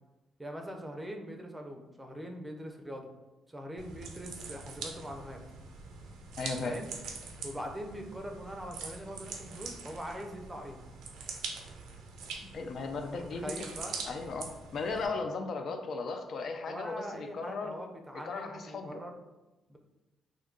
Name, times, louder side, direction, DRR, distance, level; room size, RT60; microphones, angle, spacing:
voice 1, 0.4-3.1 3.5-5.4 6.6-6.9 7.4-10.8 13.1-14.0 16.7-19.1 19.7-19.8, equal, 15° right, 3 dB, 0.5 m, -42 dB
sound 1, 3.8-15.1, right 4 dB, 85° right, 0.4 m, -44 dB
voice 2, 6.4-6.8 12.5-13.5 14.0-17.8 18.2-19.0, left 4 dB, 60° left, 5 dB, 0.3 m, -36 dB
2.6 x 2.3 x 3.7 m, 1.0 s
cardioid pair, 90°, 0 cm